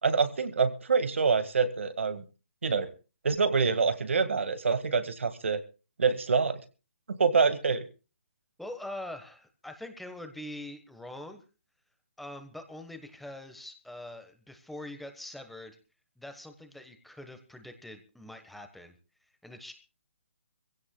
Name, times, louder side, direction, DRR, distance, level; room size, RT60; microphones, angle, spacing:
voice 1, 0.0-2.2 2.6-2.9 3.2-5.6 6.0-6.6 7.1-7.9, right 5 dB, 85° right, 10 dB, 1.9 m, -26 dB
voice 2, 8.6-11.4 12.2-15.8 16.2-19.0 19.4-19.7, left 1 dB, ahead, 7 dB, 1.3 m, -43 dB
25.0 x 16.5 x 2.3 m, 0.32 s
hypercardioid pair, 160°, 7 cm